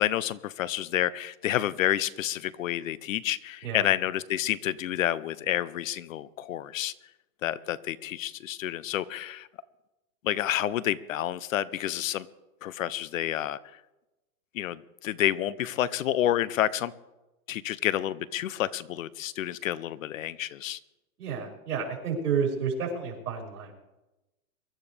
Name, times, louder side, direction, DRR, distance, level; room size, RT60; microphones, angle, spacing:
voice 1, 0.0-6.9 7.4-9.5 10.2-12.3 12.6-13.6 14.5-16.9 17.5-20.8, left 12 dB, 65° left, 19 dB, 0.8 m, -29 dB
voice 2, 21.2-23.8, right 6 dB, 85° right, -1 dB, 5.3 m, -30 dB
23.5 x 13.0 x 3.4 m, 0.99 s
supercardioid pair, 165°, 44 cm